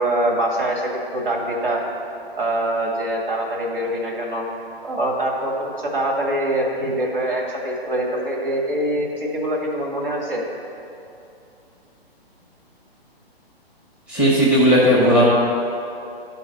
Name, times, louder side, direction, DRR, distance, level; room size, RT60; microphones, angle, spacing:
voice 1, 0.0-1.8 2.4-4.5 4.8-10.4, right 1 dB, 60° right, -1 dB, 2.0 m, -24 dB
voice 2, 14.1-15.2, equal, 5° right, -7 dB, 1.0 m, -15 dB
10.5 x 4.1 x 6.7 m, 2.7 s
figure-of-eight pair, 130°, 31 cm